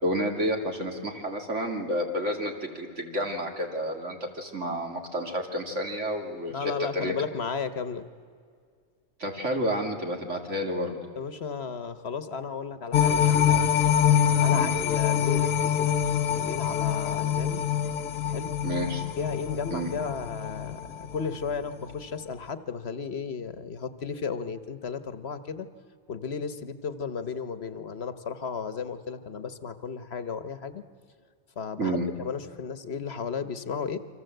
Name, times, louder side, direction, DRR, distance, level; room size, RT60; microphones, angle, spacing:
voice 1, 0.0-7.1 9.2-11.0 14.5-14.8 18.6-19.0 19.7-19.9 31.8-32.1, equal, 65° right, 2 dB, 3.2 m, -30 dB
voice 2, 6.5-8.1 11.2-13.7 14.4-16.0 16.3-17.7 18.3-18.5 19.2-25.7 26.1-30.8 31.6-34.0, left 5 dB, 55° left, 11 dB, 1.3 m, -34 dB
sound 1, 12.9-21.3 21.7-21.8, left 9 dB, 85° left, 1.2 m, -25 dB
28.0 x 25.0 x 7.9 m, 2.2 s
omnidirectional pair, 1.3 m